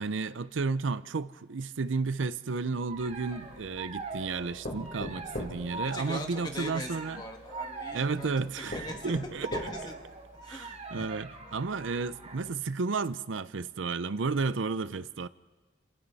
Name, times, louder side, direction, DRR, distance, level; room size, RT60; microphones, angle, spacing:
voice 1, 0.0-7.2 7.9-9.5 10.5-15.3, right 4 dB, 80° right, 0.6 m, -32 dB
sound 1, 2.9-12.5, right 3 dB, 35° right, 2.7 m, -43 dB
sound 2, 3.0-3.9 4.6-6.6 7.6-7.7 8.3-8.4 8.7-10.1 10.5-10.6 11.0-11.1, left 1 dB, 45° left, 3.3 m, -40 dB
voice 2, 5.8-8.3 8.6-9.9 10.4-11.1 11.5-11.6, left 1 dB, 25° left, 2.1 m, -41 dB
30.0 x 27.5 x 4.2 m
head